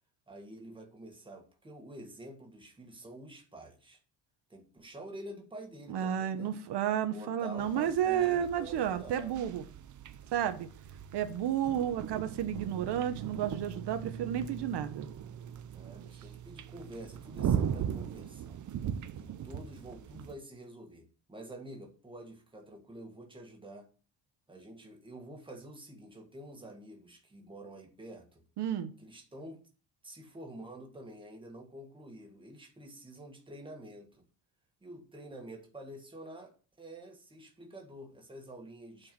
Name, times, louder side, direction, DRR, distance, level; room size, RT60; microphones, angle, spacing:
voice 1, 0.3-4.0 4.5-6.5 7.1-9.3 15.7-18.6 19.2-23.9 24.5-28.4 29.0-29.6 30.0-34.3 34.8-39.1, right 1 dB, 10° right, 1.7 m, -48 dB
voice 2, 5.9-9.6 10.3-10.7 11.1-15.1 28.6-28.9, right 10 dB, 65° right, 1.0 m, -31 dB
sound 1, 7.6-20.3, right 8 dB, 45° right, 0.6 m, -39 dB
8.9 x 4.6 x 7.5 m
cardioid pair, 175°, 43 cm